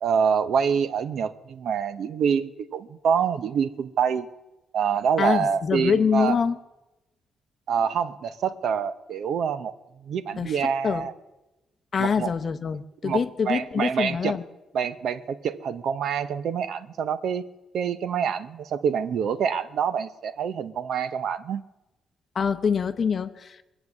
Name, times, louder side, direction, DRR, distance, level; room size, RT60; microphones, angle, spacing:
voice 1, 0.0-4.3 4.7-6.4 7.7-9.7 10.0-11.1 12.0-12.3 13.0-14.4 14.7-17.5 17.7-21.6, right 7 dB, 60° right, 12 dB, 0.7 m, -26 dB
voice 2, 5.2-6.6 10.4-10.6 10.8-11.1 11.9-14.4 22.3-23.6, left 6 dB, 35° left, 8 dB, 0.7 m, -25 dB
23.0 x 8.1 x 7.2 m, 1.0 s
cardioid pair, 160°, 0 cm